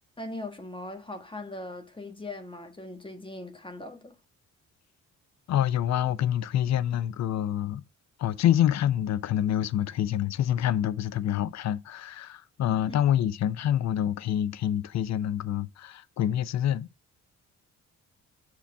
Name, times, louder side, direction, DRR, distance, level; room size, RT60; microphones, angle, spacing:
voice 1, 0.2-4.1 12.9-13.0, left 2 dB, 15° left, 1.6 m, -40 dB
voice 2, 5.5-7.8 8.2-16.9, left 11 dB, 65° left, 0.7 m, -26 dB
7.5 x 5.7 x 3.4 m
cardioid pair, 90°, 30 cm